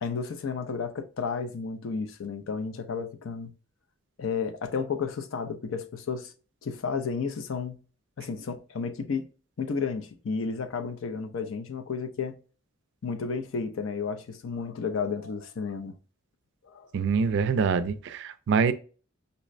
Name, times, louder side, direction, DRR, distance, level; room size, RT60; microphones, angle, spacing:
voice 1, 0.0-3.5 4.2-6.3 6.6-7.8 8.2-9.3 9.6-12.4 13.0-16.0 16.6-16.9, left 5 dB, 70° left, 0.4 m, -32 dB
voice 2, 16.9-18.7, right 5 dB, 60° right, 0.3 m, -25 dB
5.3 x 2.1 x 2.4 m
head